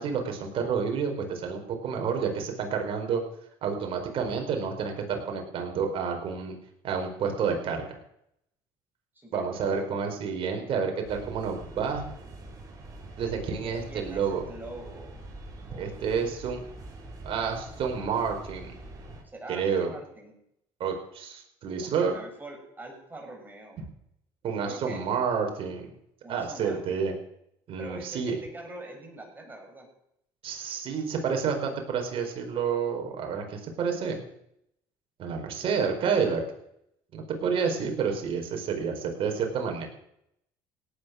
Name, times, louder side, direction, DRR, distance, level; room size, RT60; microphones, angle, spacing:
voice 1, 0.0-3.2 3.6-6.6 6.8-8.0 9.3-12.1 13.2-14.4 15.8-16.6 17.2-18.8 19.5-19.9 20.8-22.1 24.4-25.9 26.3-27.1 27.7-28.3 30.4-34.2 35.2-36.4 37.1-39.9, right 6 dB, 55° right, 3 dB, 4.6 m, -29 dB
voice 2, 9.1-9.9 13.6-15.2 15.7-15.9 19.2-20.3 21.8-23.8 24.6-25.1 26.2-27.1 27.8-29.9, right 2 dB, 15° right, 1 dB, 6.8 m, -44 dB
sound 1, 11.0-19.2, right 2 dB, 35° right, 5.8 m, -44 dB
17.5 x 9.7 x 6.5 m, 0.75 s
supercardioid pair, 90°, 11 cm